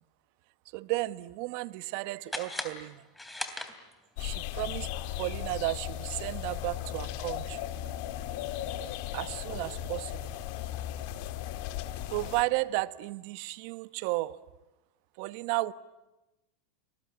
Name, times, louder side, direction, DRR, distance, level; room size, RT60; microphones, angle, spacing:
voice 1, 0.7-3.1 4.2-4.9 5.2-7.6 9.1-10.4 12.1-14.4 15.2-15.7, right 21 dB, 60° right, 1.0 m, -33 dB
sound 1, 2.3-4.2, left 2 dB, 5° left, 3.3 m, -39 dB
sound 2, 4.2-12.4, left 12 dB, 60° left, 1.9 m, -36 dB
30.0 x 20.5 x 9.7 m
hypercardioid pair, 100°, 0 cm